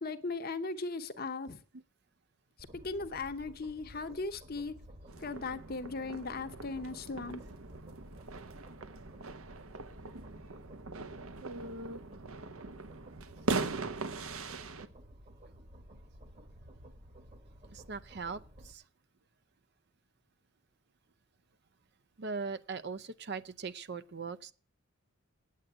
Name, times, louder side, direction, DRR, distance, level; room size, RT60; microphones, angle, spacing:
voice 1, 0.0-1.6 2.8-4.7 5.2-7.4, left 3 dB, 40° left, 0.9 m, -37 dB
sound 1, 2.6-18.7, equal, 30° right, 1.3 m, -54 dB
sound 2, 5.1-14.9, right 3 dB, 70° right, 0.9 m, -40 dB
voice 2, 11.4-12.0 17.7-18.8 22.2-24.5, right 4 dB, 50° right, 0.5 m, -40 dB
9.0 x 8.4 x 8.7 m
head